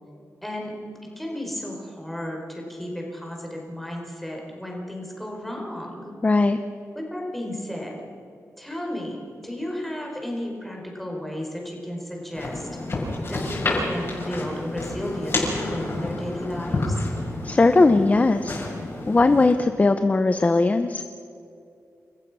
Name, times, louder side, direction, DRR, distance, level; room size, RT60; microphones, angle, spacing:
voice 1, 0.4-0.7 1.0-6.1 6.9-8.0 8.6-9.2 9.4-12.7 13.3-17.1, left 1 dB, 5° left, -1 dB, 4.8 m, -33 dB
voice 2, 6.2-6.6 17.4-18.6 19.1-21.0, left 3 dB, 25° left, 9 dB, 0.7 m, -19 dB
sound 1, 12.3-19.5, left 2 dB, 45° left, 6.4 m, -29 dB
29.0 x 14.5 x 6.2 m, 2.6 s
wide cardioid pair, 120°, 6 cm